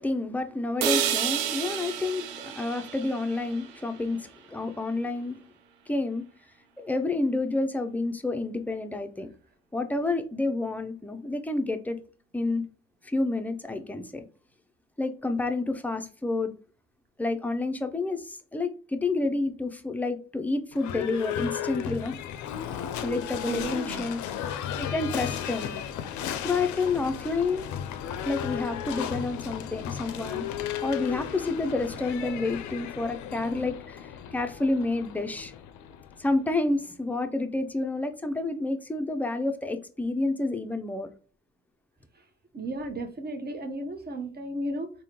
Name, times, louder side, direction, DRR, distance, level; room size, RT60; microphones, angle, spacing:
voice 1, 0.0-5.4 5.9-6.2 6.8-9.3 9.7-12.0 12.3-12.7 13.0-14.2 15.0-16.5 17.2-22.1 23.0-24.2 24.8-25.8 26.4-27.7 28.3-30.5 30.8-35.5 36.2-41.1, left 2 dB, 5° left, 0.5 m, -29 dB
sound 1, 0.8-4.8, right 9 dB, 80° right, 0.5 m, -31 dB
Livestock farm animals working animals / Bell, 20.7-36.6, left 9 dB, 65° left, 0.5 m, -35 dB
voice 2, 23.5-24.0 32.2-32.5 42.5-44.9, right 1 dB, 30° right, 0.8 m, -34 dB
3.5 x 2.2 x 2.9 m
hypercardioid pair, 50°, 32 cm